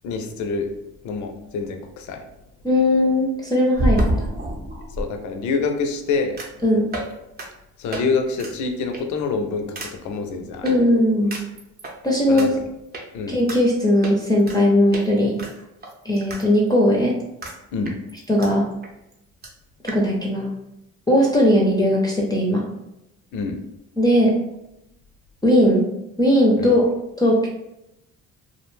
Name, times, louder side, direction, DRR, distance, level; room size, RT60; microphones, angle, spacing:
voice 1, 0.0-0.7 1.0-2.2 5.0-6.4 7.8-10.7 12.3-12.5 13.1-13.4 17.7-18.0 23.3-23.6 26.6-26.7, left 4 dB, 75° left, 6 dB, 0.5 m, -26 dB
voice 2, 2.6-4.2 6.6-6.9 10.6-11.3 12.0-12.6 13.3-15.4 16.0-17.2 18.3-18.6 19.8-20.5 21.1-22.6 24.0-24.4 25.4-25.9 26.2-26.9 27.2-27.5, left 1 dB, 15° left, -2 dB, 0.5 m, -18 dB
sound 1, 3.7-5.1 6.4-6.6 6.9-7.1 7.4-7.5 7.9-8.0 8.4-8.5 8.9-9.2 9.8-9.9 10.7-10.8 11.3-11.9 12.4-12.5 12.9-13.0 13.5-13.6 14.0-14.6 14.9-15.1 15.4-16.4 16.7-16.8 17.4-17.6 17.9-18.5 18.8-18.9 19.1-19.2 19.4-19.5 19.9-20.0, right 1 dB, 30° right, 0.6 m, -27 dB
2.4 x 2.1 x 3.1 m, 0.86 s
cardioid pair, 90°, 30 cm